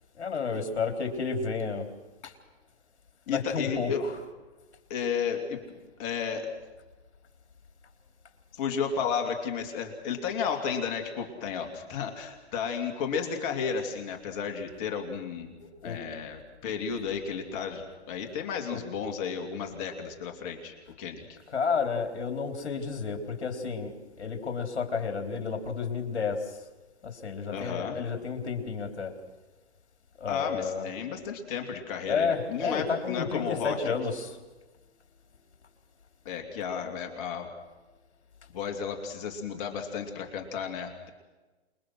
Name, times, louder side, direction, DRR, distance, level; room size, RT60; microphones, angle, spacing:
voice 1, 0.2-1.9 2.2-2.3 3.3-4.3 15.6-16.0 18.7-18.8 21.5-26.4 27.0-29.1 30.2-30.9 32.1-34.4, left 5 dB, 70° left, 6 dB, 3.9 m, -31 dB
voice 2, 3.3-4.1 4.9-5.6 6.0-6.5 8.5-15.5 15.8-21.4 27.5-28.0 30.3-33.9 36.2-37.5 38.5-41.1, left 6 dB, 35° left, 4 dB, 2.7 m, -33 dB
28.0 x 21.5 x 6.3 m, 1.2 s
hypercardioid pair, 140°, 34 cm